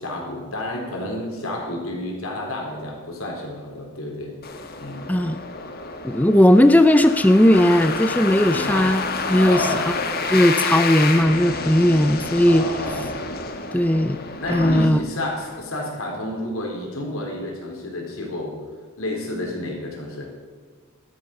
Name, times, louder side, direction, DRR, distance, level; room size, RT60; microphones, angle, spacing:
voice 1, 0.0-4.3 4.8-5.1 8.5-8.8 9.4-9.9 12.4-13.1 14.4-18.6 19.0-20.3, left 1 dB, 80° left, 0 dB, 4.3 m, -30 dB
sound 1, 4.4-15.6, left 4 dB, 45° left, 1.3 m, -29 dB
voice 2, 6.0-9.0 9.3-9.9 10.3-12.6 13.7-14.2 14.5-15.0, left 1 dB, 5° left, 9 dB, 0.4 m, -17 dB
14.0 x 12.5 x 6.6 m, 1.5 s
head